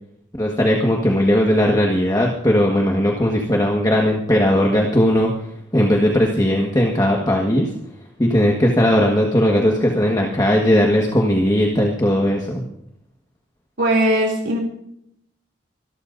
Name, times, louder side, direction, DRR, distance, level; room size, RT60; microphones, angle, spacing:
voice 1, 0.4-5.3 5.7-7.7 8.2-12.6, equal, 20° left, -1 dB, 1.6 m, -18 dB
voice 2, 13.8-14.6, right 1 dB, 80° right, -2 dB, 2.8 m, -19 dB
24.5 x 13.0 x 2.7 m, 0.76 s
head